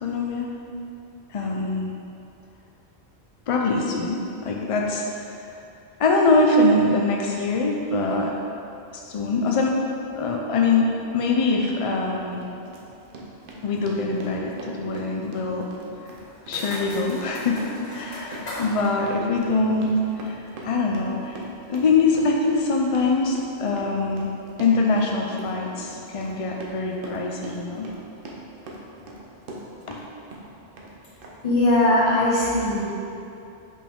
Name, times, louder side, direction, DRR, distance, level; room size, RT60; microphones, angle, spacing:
voice 1, 0.0-0.5 1.3-1.9 3.5-5.3 6.0-8.3 8.9-9.8 10.1-12.5 13.6-15.7 16.5-21.4 21.7-24.3 24.6-27.9 29.9-30.0, left 3 dB, 60° left, 0 dB, 0.3 m, -23 dB
Run, 11.7-11.9 12.3-30.0 30.3-30.9 31.2-31.3, right 1 dB, 60° right, 0.9 m, -41 dB
sound 1, 16.1-20.2, left 1 dB, 75° left, 1.9 m, -39 dB
voice 2, 31.4-32.9, left 1 dB, 35° left, -9 dB, 1.5 m, -20 dB
5.2 x 5.1 x 3.6 m, 2.8 s
omnidirectional pair, 1.1 m